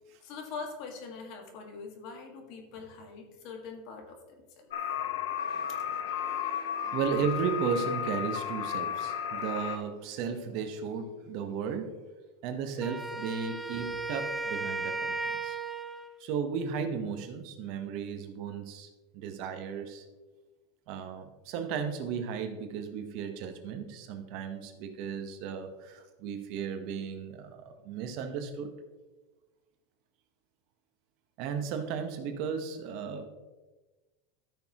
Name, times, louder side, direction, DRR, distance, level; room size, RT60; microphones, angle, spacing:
voice 1, 0.2-4.2 4.6-4.7 6.8-7.0, left 4 dB, 45° left, 4 dB, 1.7 m, -43 dB
sound 1, 4.7-9.8, left 8 dB, 85° left, 1.0 m, -33 dB
voice 2, 5.2-11.9 12.4-15.6 16.2-18.9 19.1-20.0 20.9-28.7 31.4-33.3, right 6 dB, 45° right, 7 dB, 1.0 m, -35 dB
Wind instrument woodwind instrument, 12.8-16.2, right 3 dB, ahead, 0.5 m, -35 dB
14.0 x 6.3 x 3.0 m, 1.2 s
supercardioid pair, 155°, 0 cm